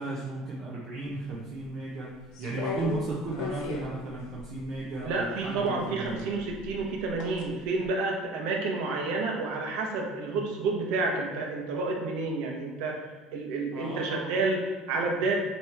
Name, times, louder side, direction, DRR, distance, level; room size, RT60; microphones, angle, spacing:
voice 1, 0.0-2.1 2.4-6.4 13.7-14.4, right 2 dB, 45° right, -5 dB, 1.0 m, -35 dB
sound 1, 2.3-5.1 6.0-7.5 7.8-7.9, left 5 dB, 70° left, 1.1 m, -36 dB
voice 2, 5.0-13.0 13.3-15.3, right 3 dB, 75° right, 0 dB, 1.2 m, -30 dB
8.5 x 3.1 x 3.6 m, 1.2 s
cardioid pair, 145°, 0 cm